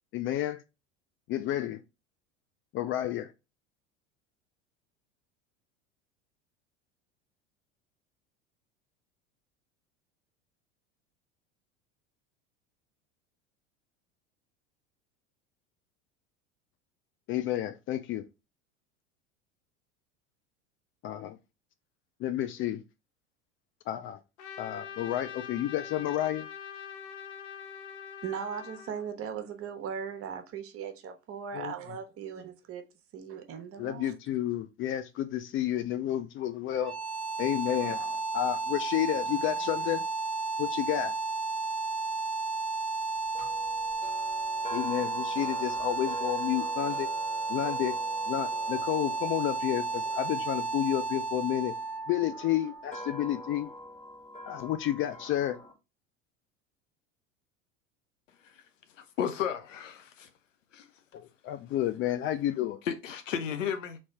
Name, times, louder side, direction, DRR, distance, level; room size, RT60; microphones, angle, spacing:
voice 1, 0.1-0.6 1.3-1.8 2.7-3.3 17.3-18.3 21.0-21.4 22.2-22.8 23.9-24.2 24.6-26.5 31.5-31.7 33.8-36.9 37.4-40.0 40.6-41.2 44.7-47.1 47.5-48.0 48.3-51.7 52.1-53.7 54.4-55.6 61.1-62.8, left 12 dB, 35° left, 0.4 m, -31 dB
Trumpet, 24.4-29.1, left 8 dB, 65° left, 1.0 m, -43 dB
voice 2, 28.2-32.8 33.1-34.2, right 7 dB, 40° right, 0.9 m, -38 dB
sound 1, 36.7-53.6, right 3 dB, 5° left, 1.0 m, -33 dB
sound 2, 43.3-51.5 52.2-55.7, left 1 dB, 20° left, 1.7 m, -45 dB
voice 3, 59.0-60.3 60.7-60.9 62.9-64.0, left 8 dB, 85° left, 0.6 m, -33 dB
3.1 x 2.8 x 4.4 m
hypercardioid pair, 80°, 37 cm